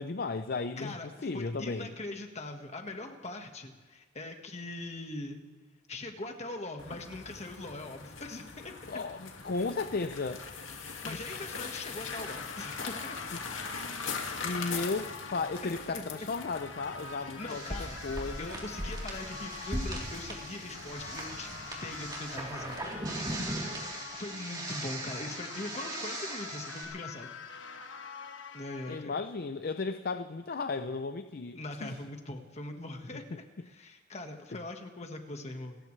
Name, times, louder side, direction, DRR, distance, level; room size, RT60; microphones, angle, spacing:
voice 1, 0.0-1.9 8.9-10.4 11.0-11.5 13.3-13.4 14.4-18.6 23.3-23.6 28.9-32.0 33.1-33.4, left 3 dB, 50° left, 9 dB, 0.5 m, -35 dB
voice 2, 0.8-5.4 5.9-8.8 10.7-13.2 15.6-16.3 17.2-18.0 18.4-22.8 24.1-27.3 28.5-29.2 31.6-35.8, left 2 dB, 35° left, 4 dB, 1.6 m, -41 dB
sound 1, 6.8-23.3, left 5 dB, 85° left, 2.1 m, -42 dB
sound 2, 12.2-29.0, left 4 dB, 70° left, 1.3 m, -46 dB
sound 3, 17.5-26.8, right 1 dB, 20° right, 3.5 m, -39 dB
29.5 x 15.0 x 3.3 m, 1.3 s
head